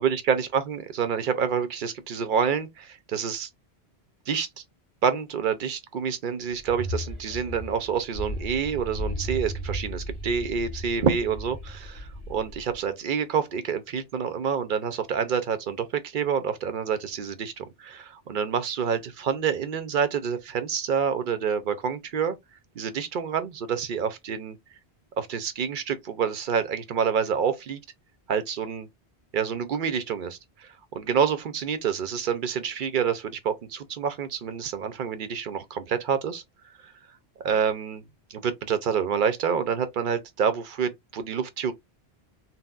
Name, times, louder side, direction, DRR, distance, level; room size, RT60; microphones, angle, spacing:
voice 1, 0.0-3.5 4.3-4.6 5.0-22.4 22.8-24.6 25.2-27.8 28.3-28.9 29.3-36.4 36.8-36.9 37.4-38.0 38.3-41.7, right 7 dB, 60° right, 0.7 m, -27 dB
sound 1, 6.6-12.8, equal, 30° left, 1.5 m, -35 dB
4.0 x 2.0 x 2.3 m
omnidirectional pair, 1.1 m